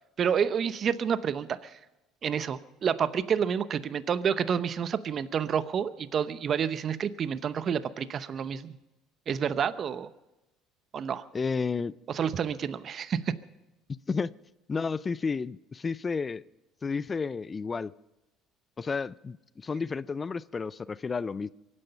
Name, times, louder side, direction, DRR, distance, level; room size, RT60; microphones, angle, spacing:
voice 1, 0.2-1.8 2.2-8.8 9.3-10.1 10.9-11.2 12.1-13.3, right 7 dB, 45° right, 14 dB, 0.8 m, -29 dB
voice 2, 11.3-11.9 13.9-14.3 14.7-16.4 16.8-17.9 18.8-21.5, left 5 dB, 30° left, 19 dB, 0.5 m, -31 dB
24.0 x 9.9 x 5.6 m, 0.97 s
hypercardioid pair, 70°, 0 cm